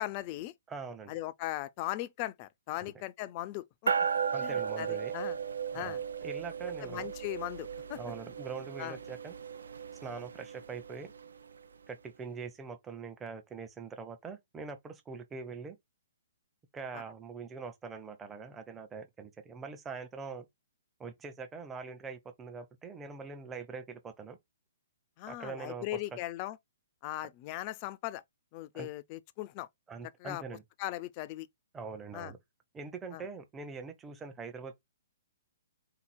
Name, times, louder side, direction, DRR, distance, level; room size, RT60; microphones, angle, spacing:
voice 1, 0.0-0.5 1.1-4.1 4.4-5.4 5.7-6.0 6.8-8.0 8.8-9.0 16.9-17.0 25.2-26.6 27.0-28.2 28.5-29.7 30.2-30.4 30.8-31.5 32.1-32.3 33.1-33.2, left 16 dB, 35° left, 0.4 m, -38 dB
voice 2, 0.7-1.2 2.8-2.9 4.3-5.1 5.7-6.0 6.2-7.1 7.9-9.3 10.0-11.1 11.9-15.8 16.7-20.5 21.0-24.4 25.3-26.0 28.7-28.9 29.9-30.6 31.7-32.4 32.7-34.8, right 4 dB, 15° right, 0.7 m, -43 dB
sound 1, 3.9-11.6, right 6 dB, 75° right, 0.7 m, -36 dB
3.9 x 2.9 x 4.2 m
figure-of-eight pair, 130°, 0 cm